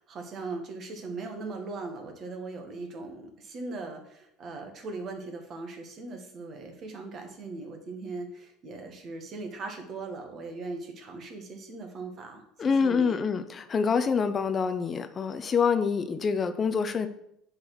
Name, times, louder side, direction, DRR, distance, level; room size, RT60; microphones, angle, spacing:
voice 1, 0.0-13.2, right 3 dB, 45° right, 4 dB, 1.8 m, -39 dB
voice 2, 12.6-17.1, left 5 dB, 35° left, 10 dB, 0.6 m, -26 dB
7.6 x 4.0 x 6.2 m, 0.74 s
hypercardioid pair, 70°, 0 cm